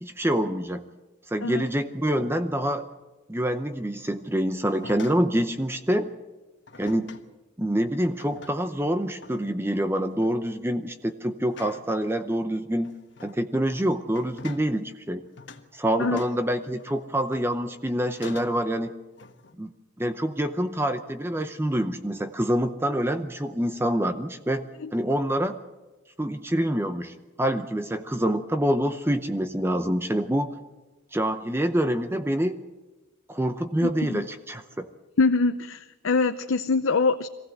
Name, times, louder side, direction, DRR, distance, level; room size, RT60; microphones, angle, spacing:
voice 1, 0.0-0.8 1.3-2.9 3.3-6.1 6.8-7.2 7.6-12.9 13.2-15.2 15.7-18.9 19.6-19.7 20.0-24.6 24.9-25.6 26.2-30.5 31.1-32.6 33.3-34.9, equal, 10° right, 8 dB, 0.7 m, -26 dB
sound 1, 4.7-5.3 6.7-7.3 8.0-8.8 9.2-9.5 10.0-10.4 11.5-11.9 12.7-13.4 14.1-14.7 15.4-15.7 16.2-17.6 18.1-18.7 19.2-19.6, left 4 dB, 60° left, 1.3 m, -46 dB
voice 2, 33.8-34.2 35.2-37.3, left 4 dB, 85° left, 8 dB, 0.7 m, -24 dB
23.0 x 16.0 x 7.8 m, 1.1 s
head